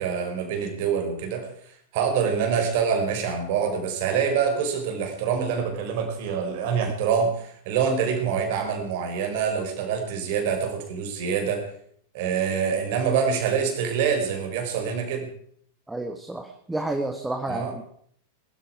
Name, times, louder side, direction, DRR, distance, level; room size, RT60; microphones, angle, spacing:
voice 1, 0.0-1.5 1.9-11.7 12.1-15.3 17.5-17.8, right 6 dB, 50° right, 4 dB, 4.6 m, -25 dB
voice 2, 15.9-17.8, right 2 dB, 5° right, 5 dB, 1.7 m, -30 dB
22.0 x 13.0 x 4.8 m, 0.63 s
figure-of-eight pair, 90°, 0 cm